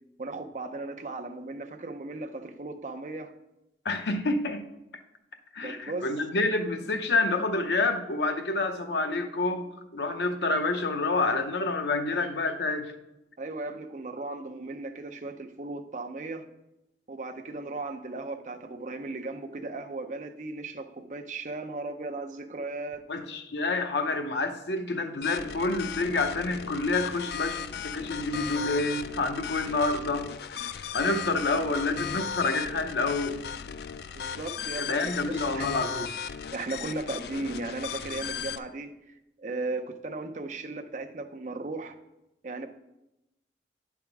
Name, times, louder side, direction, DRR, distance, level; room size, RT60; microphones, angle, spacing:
voice 1, 0.2-3.3 5.6-6.1 13.4-16.4 17.1-23.0 34.1-35.7 36.5-38.9 39.4-42.0 42.4-42.7, right 2 dB, 45° right, 6 dB, 0.6 m, -36 dB
voice 2, 3.8-4.6 5.5-12.9 23.1-30.6 30.9-33.4 34.8-36.1, left 3 dB, 80° left, 6 dB, 0.7 m, -28 dB
sound 1, 25.2-38.6, left 7 dB, 60° left, 0.3 m, -37 dB
9.4 x 3.5 x 6.0 m, 0.91 s
head